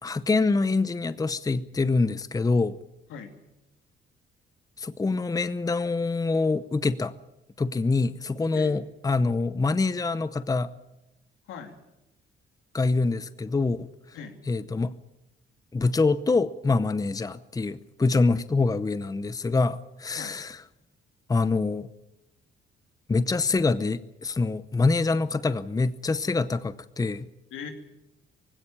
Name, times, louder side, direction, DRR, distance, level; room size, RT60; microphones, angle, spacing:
voice 1, 0.0-2.8 4.8-7.1 7.6-10.7 12.7-13.9 14.5-14.9 15.7-20.6 21.3-21.9 23.1-27.3, left 3 dB, 20° left, 15 dB, 0.7 m, -25 dB
voice 2, 11.5-11.8 14.1-14.4 20.1-20.4 27.5-27.7, left 6 dB, 85° left, 5 dB, 2.7 m, -40 dB
19.5 x 16.5 x 8.7 m, 0.93 s
cardioid pair, 90°, 20 cm